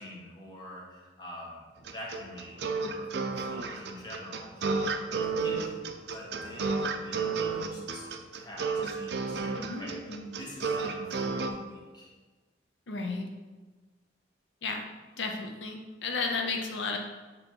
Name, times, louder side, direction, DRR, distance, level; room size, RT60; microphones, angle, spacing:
voice 1, 0.0-5.7 6.1-12.1, left 1 dB, 25° left, -3 dB, 1.1 m, -46 dB
sound 1, 1.9-11.5, right 4 dB, 65° right, 0.5 m, -32 dB
voice 2, 9.6-10.3 12.9-13.3 14.6-14.9 15.2-17.0, left 4 dB, 80° left, 2 dB, 0.6 m, -33 dB
7.6 x 3.0 x 4.4 m, 1.3 s
head